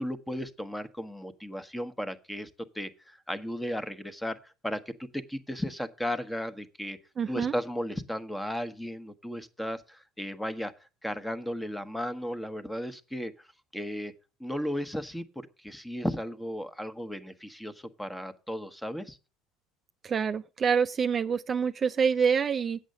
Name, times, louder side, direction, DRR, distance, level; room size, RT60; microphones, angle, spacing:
voice 1, 0.0-2.5 2.7-7.0 7.3-13.5 13.7-14.1 14.4-19.2, equal, 5° left, 1.1 m, -35 dB
voice 2, 7.2-7.5 20.0-22.8, right 6 dB, 35° right, 0.5 m, -26 dB
8.2 x 6.5 x 6.6 m
supercardioid pair, 85°, 0 cm